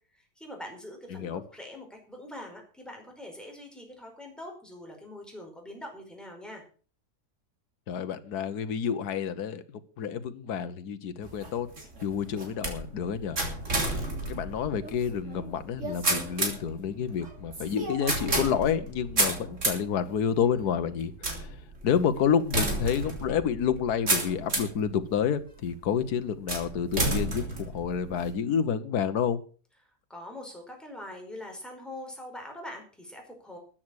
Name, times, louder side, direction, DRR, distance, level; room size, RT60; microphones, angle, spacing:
voice 1, 0.1-6.6 29.8-33.6, left 1 dB, ahead, 1 dB, 4.9 m, -43 dB
voice 2, 1.1-1.4 7.9-9.6 10.0-11.7 12.0-13.4 13.7-14.0 14.3-21.5 21.8-29.4, left 7 dB, 75° left, 10 dB, 1.6 m, -29 dB
sound 1, 11.2-24.8 25.4-25.9 26.5-28.3, right 2 dB, 45° right, 3.7 m, -31 dB
13.5 x 8.9 x 6.4 m, 0.40 s
omnidirectional pair, 1.7 m